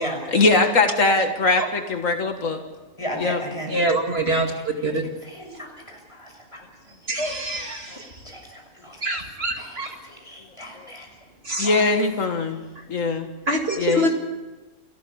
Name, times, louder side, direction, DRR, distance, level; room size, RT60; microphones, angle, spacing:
voice 1, 0.0-2.6 3.2-3.4 11.6-12.6 12.9-13.3 13.8-14.1, left 3 dB, 75° left, 5 dB, 2.1 m, -21 dB
voice 2, 3.0-3.7 5.2-6.6 7.9-8.0 8.2-9.0 9.6-9.7 10.0-11.1 11.6-11.8, equal, 20° left, 1 dB, 6.5 m, -34 dB
voice 3, 3.7-4.5 4.8-5.0 7.1-8.1 9.0-9.9 11.4-11.7 13.5-14.1, right 1 dB, 50° right, 3 dB, 2.5 m, -24 dB
29.0 x 13.5 x 8.7 m, 1.2 s
omnidirectional pair, 1.4 m